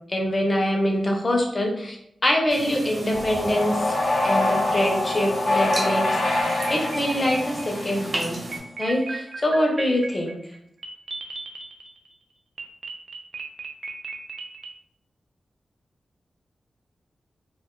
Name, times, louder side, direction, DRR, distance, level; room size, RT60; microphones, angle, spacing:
voice 1, 0.1-2.0 2.2-6.0 6.3-8.4 8.8-10.3, left 1 dB, 25° left, 0 dB, 0.6 m, -24 dB
sound 1, 2.5-8.6, right 1 dB, 30° right, 0.9 m, -35 dB
sound 2, 3.1-8.4, left 2 dB, 70° left, 0.7 m, -25 dB
sound 3, 6.4-7.9 8.5-12.1 12.6-14.7, right 3 dB, 55° right, 0.4 m, -36 dB
2.3 x 2.2 x 3.7 m, 0.74 s
wide cardioid pair, 130°, 0 cm